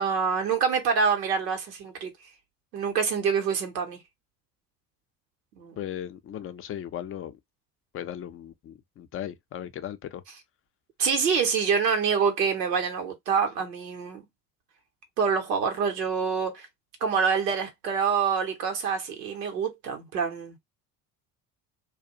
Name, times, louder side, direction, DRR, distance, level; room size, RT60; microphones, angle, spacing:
voice 1, 0.0-2.1 2.7-4.0 5.6-5.8 11.0-14.2 15.2-16.7 17.0-20.6, right 6 dB, 80° right, 0.9 m, -26 dB
voice 2, 5.8-7.4 7.9-10.2, left 10 dB, 30° left, 0.5 m, -37 dB
2.3 x 2.2 x 2.7 m
figure-of-eight pair, 55°, 48 cm